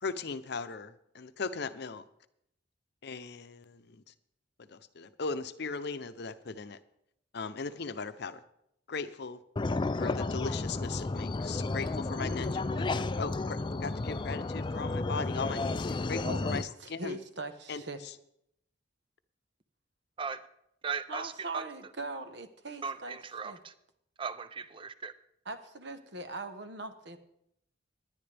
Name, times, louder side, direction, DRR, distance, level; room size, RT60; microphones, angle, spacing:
voice 1, 0.0-2.0 3.0-4.0 4.7-6.8 7.3-8.4 8.9-9.4 10.0-17.2 17.7-17.8, left 4 dB, 60° left, 12 dB, 0.7 m, -38 dB
sound 1, 9.6-16.6, left 3 dB, 25° left, 0.4 m, -32 dB
voice 2, 16.2-18.0 21.1-23.6 25.4-27.2, right 2 dB, 60° right, 9 dB, 1.1 m, -41 dB
voice 3, 20.8-21.2 22.8-22.9 23.3-23.5 24.2-25.1, right 5 dB, 25° right, 13 dB, 0.6 m, -36 dB
19.0 x 10.5 x 3.4 m, 0.76 s
head